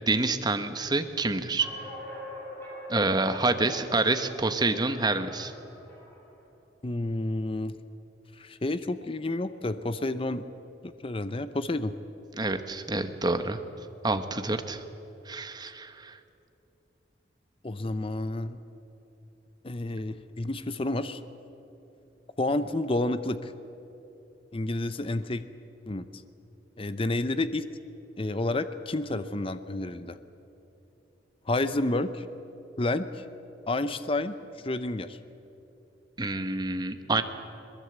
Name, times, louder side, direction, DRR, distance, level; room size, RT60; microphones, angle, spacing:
voice 1, 0.1-1.7 2.9-5.5 12.4-13.6 14.0-14.8 15.3-16.2 36.2-37.2, right 3 dB, 20° right, 8 dB, 1.1 m, -27 dB
sound 1, 1.6-6.4, left 1 dB, 10° left, 7.0 m, -44 dB
voice 2, 6.8-7.8 8.4-10.4 10.8-11.9 17.6-18.6 19.6-21.2 22.4-23.5 24.5-25.5 25.9-26.1 26.8-27.6 28.2-30.2 31.5-32.2 32.8-33.2 33.7-34.3 34.6-35.2, left 2 dB, 30° left, 12 dB, 0.7 m, -30 dB
22.0 x 21.5 x 8.0 m, 2.9 s
head